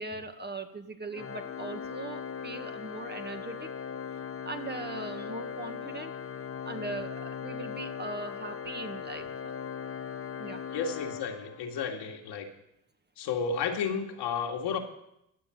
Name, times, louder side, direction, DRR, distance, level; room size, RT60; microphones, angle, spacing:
voice 1, 0.0-3.7 4.4-6.1 6.6-9.5 10.4-10.6, right 3 dB, 20° right, 7 dB, 1.7 m, -40 dB
Organ, 1.1-11.9, left 7 dB, 30° left, 1.2 m, -39 dB
voice 2, 10.7-12.5 13.2-14.8, left 6 dB, 60° left, 3 dB, 2.2 m, -32 dB
14.0 x 7.1 x 9.3 m, 0.80 s
hypercardioid pair, 55°, 45 cm